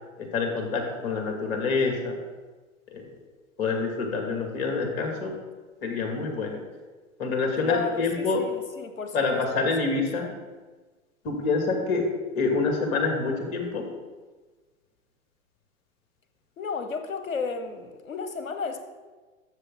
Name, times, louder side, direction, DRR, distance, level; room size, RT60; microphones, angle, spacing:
voice 1, 0.2-2.2 2.9-3.0 3.6-5.4 5.8-6.6 7.2-8.4 9.1-10.3 11.2-12.1 12.3-13.8, left 4 dB, 45° left, 2 dB, 2.4 m, -26 dB
voice 2, 7.6-10.3 16.6-18.9, left 4 dB, 75° left, 8 dB, 1.2 m, -34 dB
12.5 x 7.2 x 3.9 m, 1.3 s
figure-of-eight pair, 105°, 41 cm